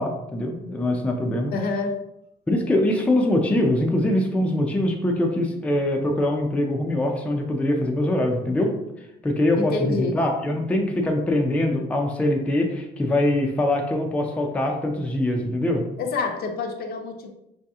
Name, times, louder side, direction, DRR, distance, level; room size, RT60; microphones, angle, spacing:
voice 1, 0.0-1.5 2.5-8.7 9.2-15.8, left 1 dB, 10° left, 1 dB, 0.4 m, -23 dB
voice 2, 1.5-1.9 9.5-10.2 16.0-17.3, left 3 dB, 65° left, 4 dB, 0.6 m, -27 dB
3.1 x 2.8 x 3.5 m, 0.85 s
cardioid pair, 145°, 17 cm